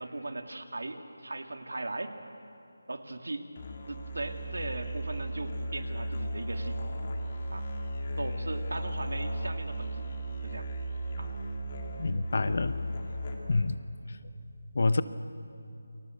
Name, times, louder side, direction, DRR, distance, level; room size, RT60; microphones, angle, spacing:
voice 1, 0.0-2.1 2.9-3.5 3.9-6.8 7.5-7.7 8.2-10.1 10.4-10.7 11.2-11.3, right 2 dB, 75° right, 6 dB, 2.6 m, -38 dB
Musical instrument, 3.6-13.7, right 1 dB, 25° left, 2.6 m, -35 dB
voice 2, 11.9-12.7 13.5-13.8 14.7-15.0, left 3 dB, 40° left, 13 dB, 0.8 m, -27 dB
29.5 x 25.5 x 8.0 m, 2.7 s
figure-of-eight pair, 180°, 0 cm